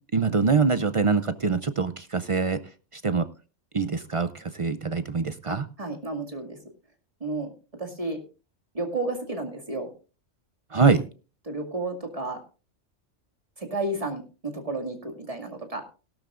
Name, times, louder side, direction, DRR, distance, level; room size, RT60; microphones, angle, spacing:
voice 1, 0.1-2.6 2.9-3.3 3.7-5.7 10.7-11.0, right 4 dB, 45° right, 12 dB, 0.4 m, -24 dB
voice 2, 5.5-6.6 7.2-7.5 7.8-8.2 8.7-9.9 11.5-12.4 13.6-15.8, right 2 dB, 30° right, 3 dB, 2.2 m, -32 dB
17.0 x 12.0 x 2.5 m, 0.35 s
omnidirectional pair, 1.3 m